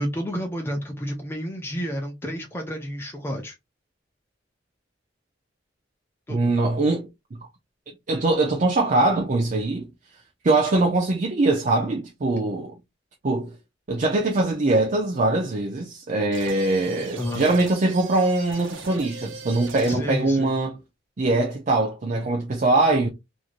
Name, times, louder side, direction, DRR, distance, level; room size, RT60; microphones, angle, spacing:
voice 1, 0.0-3.6 6.3-6.5 17.1-17.4 19.9-20.5, equal, 10° left, 0.4 m, -30 dB
voice 2, 6.3-7.1 8.1-9.9 10.4-12.7 13.2-13.5 13.9-20.8 21.2-23.1, right 2 dB, 40° right, 0.5 m, -22 dB
sound 1, 16.3-20.2, right 3 dB, 85° right, 0.8 m, -39 dB
3.1 x 2.5 x 2.4 m
head